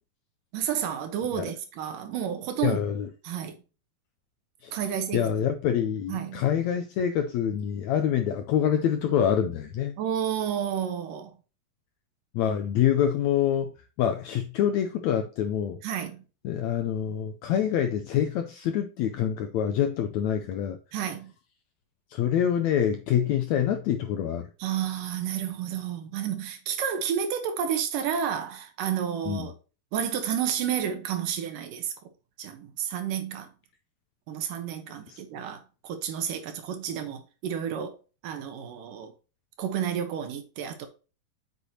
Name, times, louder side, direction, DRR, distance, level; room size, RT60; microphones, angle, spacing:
voice 1, 0.5-2.8 3.2-3.6 4.7-5.3 6.1-6.4 10.0-11.3 15.8-16.2 20.9-21.3 24.6-29.5 29.9-31.9 32.4-33.5 34.3-38.0 38.2-39.1 39.6-40.9, right 9 dB, 75° right, 2.7 m, -31 dB
voice 2, 2.6-3.1 4.6-4.8 5.1-9.9 12.3-15.8 16.4-20.8 22.1-24.5 29.2-29.5 35.1-35.2, left 9 dB, 80° left, 1.6 m, -26 dB
8.2 x 6.1 x 2.9 m
omnidirectional pair, 3.9 m